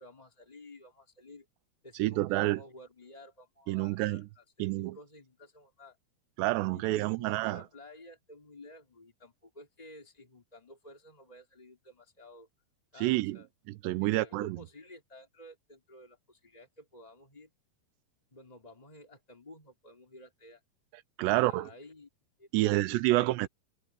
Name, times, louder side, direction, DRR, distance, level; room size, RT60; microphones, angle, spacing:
voice 1, 0.0-1.5 1.8-6.0 6.7-12.5 12.9-13.5 14.0-17.5 18.3-20.6 21.2-22.1 22.4-22.8 23.1-23.2, left 1 dB, 10° left, 2.0 m, -53 dB
voice 2, 1.9-2.6 3.7-4.3 4.6-5.0 6.4-7.6 13.0-13.4 13.7-14.6 21.2-21.7 22.5-23.5, right 18 dB, 90° right, 2.8 m, -28 dB
omnidirectional pair, 5.0 m